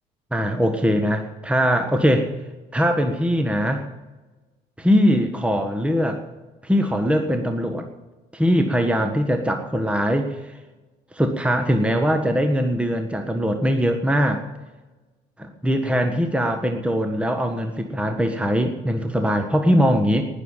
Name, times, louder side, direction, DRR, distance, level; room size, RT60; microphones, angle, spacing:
voice 1, 0.3-2.3 2.7-3.8 4.8-6.2 6.6-7.9 8.3-10.4 11.1-14.4 15.4-20.3, equal, 5° right, 5 dB, 1.4 m, -21 dB
19.0 x 7.2 x 9.0 m, 1.2 s
hypercardioid pair, 70°, 20 cm